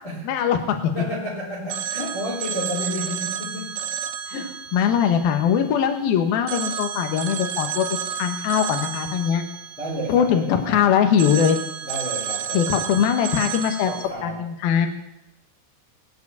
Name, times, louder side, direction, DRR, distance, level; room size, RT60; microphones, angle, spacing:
voice 1, 0.2-0.9 4.3-4.4 4.7-7.9 8.2-9.4 10.1-11.6 12.5-13.9 14.2-14.9, left 8 dB, 70° left, 6 dB, 2.4 m, -21 dB
voice 2, 0.9-3.7 4.3-4.5 9.8-10.8 11.8-12.8 13.8-14.4, equal, 25° left, -5 dB, 3.7 m, -31 dB
Telephone, 1.7-6.0 6.5-10.7 11.2-14.1, right 9 dB, 85° right, 3.7 m, -31 dB
20.5 x 7.9 x 8.3 m, 0.87 s
omnidirectional pair, 5.9 m